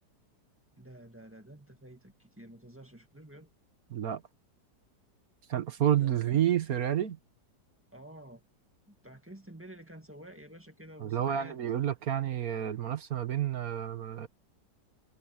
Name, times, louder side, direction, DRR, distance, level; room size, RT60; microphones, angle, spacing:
voice 1, 0.7-3.5 6.0-6.5 7.9-8.4 8.9-11.6, right 1 dB, 5° right, 1.9 m, -50 dB
voice 2, 3.9-4.2 5.5-7.2 11.0-14.3, right 10 dB, 60° right, 1.5 m, -29 dB
omnidirectional pair, 1.9 m